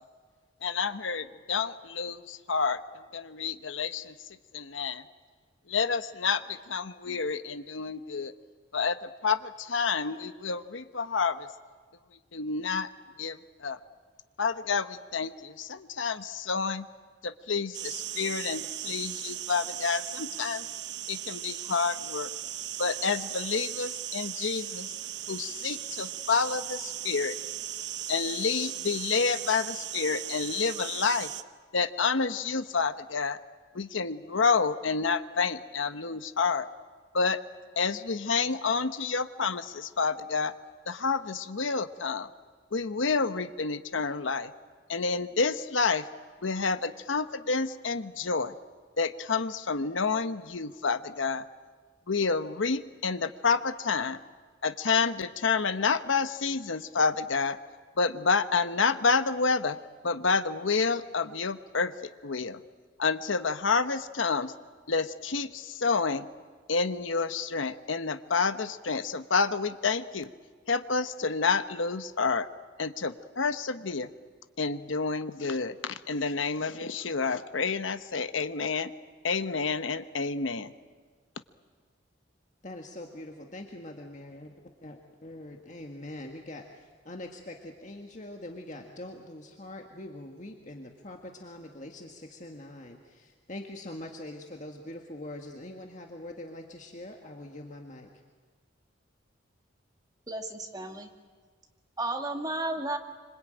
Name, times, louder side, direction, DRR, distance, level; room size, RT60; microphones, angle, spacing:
voice 1, 0.6-5.1 5.7-8.3 8.7-11.5 12.3-12.9 13.2-13.8 14.4-16.9 17.2-20.7 21.1-22.3 22.8-24.9 25.3-27.4 28.1-31.3 31.7-33.4 33.7-36.7 37.1-37.4 37.8-40.5 40.9-42.3 42.7-44.5 44.9-46.1 46.4-48.5 49.0-51.5 52.1-54.2 54.6-57.6 58.0-59.8 60.0-62.6 63.0-64.5 64.9-66.3 66.7-70.3 70.7-72.5 72.8-74.1 74.6-78.9 79.2-80.7, left 5 dB, 80° left, 11 dB, 1.0 m, -29 dB
sound 1, 17.7-31.4, right 11 dB, 60° right, 0.8 m, -37 dB
voice 2, 82.6-84.5 84.8-98.1, left 1 dB, 40° left, 2 dB, 1.7 m, -43 dB
voice 3, 100.3-101.1 102.0-103.0, right 2 dB, 20° right, 4 dB, 1.9 m, -33 dB
26.0 x 25.5 x 9.0 m, 1.5 s
head